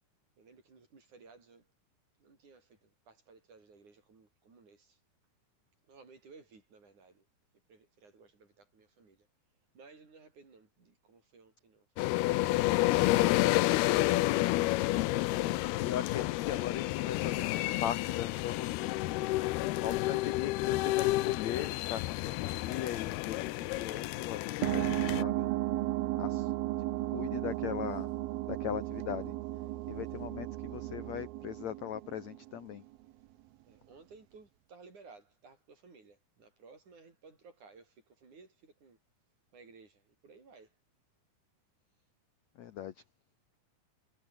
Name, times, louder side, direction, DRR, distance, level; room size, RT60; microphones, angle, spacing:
voice 1, 0.4-1.7 2.2-5.0 5.9-7.3 7.7-9.3 9.7-13.4 33.6-39.0 39.5-40.8, right 4 dB, 50° right, 6.8 m, -57 dB
sound 1, 12.0-25.2, left 18 dB, 80° left, 2.8 m, -30 dB
voice 2, 15.4-19.2 19.8-25.5 26.2-26.5 27.1-28.1 28.5-29.4 29.9-32.8 42.6-43.0, left 10 dB, 65° left, 1.8 m, -39 dB
sound 2, 24.6-32.8, right 16 dB, 75° right, 2.7 m, -34 dB
omnidirectional pair, 4.6 m